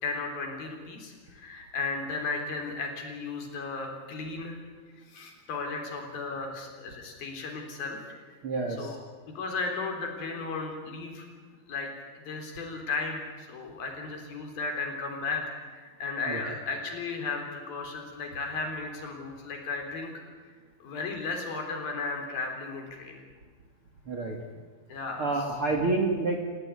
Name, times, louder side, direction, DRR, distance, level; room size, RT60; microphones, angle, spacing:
voice 1, 0.0-4.6 5.0-8.2 8.8-9.0 9.4-11.3 11.7-15.4 15.7-20.1 20.4-23.2 24.9-25.3, left 4 dB, 55° left, 3 dB, 5.3 m, -35 dB
voice 2, 8.4-9.0 16.3-16.4 24.1-24.4 25.2-26.4, right 3 dB, 40° right, 3 dB, 2.2 m, -28 dB
29.5 x 16.5 x 9.8 m, 1.5 s
omnidirectional pair, 5.0 m